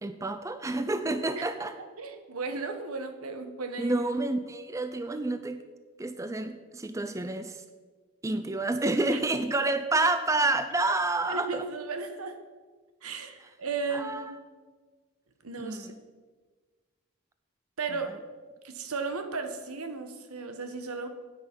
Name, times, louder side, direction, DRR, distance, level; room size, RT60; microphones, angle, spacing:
voice 1, 0.0-1.7 3.8-5.6 6.0-7.6 8.2-11.7 13.9-14.4 15.6-15.9, right 2 dB, 15° right, 10 dB, 0.4 m, -29 dB
voice 2, 1.8-3.9 11.3-12.4 13.0-14.4 15.4-15.9 17.8-18.2 18.6-21.1, right 4 dB, 85° right, 8 dB, 1.1 m, -35 dB
9.7 x 9.0 x 5.2 m, 1.4 s
head